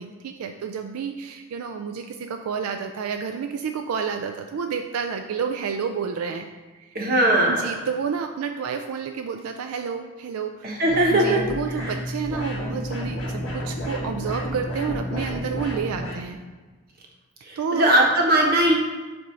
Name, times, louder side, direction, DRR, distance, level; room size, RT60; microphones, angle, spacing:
voice 1, 0.0-6.5 6.7-6.9 7.5-10.8 11.1-16.4 17.6-17.9, right 6 dB, 80° right, 6 dB, 0.4 m, -30 dB
voice 2, 6.9-7.7 10.6-11.4 11.7-12.0 17.4-18.7, right 1 dB, 45° right, 0 dB, 1.0 m, -20 dB
sound 1, 10.9-16.2, equal, 75° left, 2.0 m, -30 dB
7.7 x 2.6 x 5.5 m, 1.3 s
head